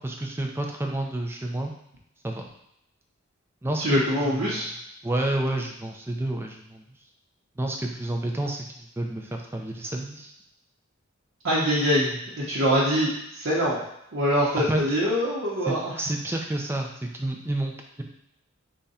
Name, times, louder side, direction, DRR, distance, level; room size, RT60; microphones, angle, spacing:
voice 1, 0.0-1.7 2.2-2.5 3.6-4.6 5.0-6.8 7.6-10.3 14.5-14.8 15.7-18.0, right 1 dB, 10° right, 2 dB, 0.4 m, -30 dB
voice 2, 3.8-4.7 11.4-13.8 14.1-15.9, equal, 70° right, -8 dB, 0.8 m, -24 dB
3.6 x 2.2 x 4.1 m, 0.79 s
head